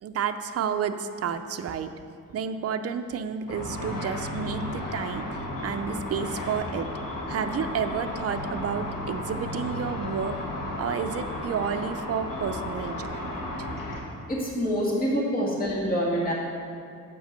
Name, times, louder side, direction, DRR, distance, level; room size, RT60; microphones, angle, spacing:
voice 1, 0.0-1.9 2.3-5.3 5.6-6.9 7.3-10.4 10.8-13.7, right 7 dB, 50° right, 8 dB, 0.5 m, -31 dB
Car / Traffic noise roadway noise / Engine, 3.5-14.0, left 1 dB, 80° left, 1.4 m, -34 dB
voice 2, 14.3-16.3, equal, 25° left, -4 dB, 1.6 m, -26 dB
6.7 x 5.4 x 6.6 m, 2.3 s
wide cardioid pair, 130°, 32 cm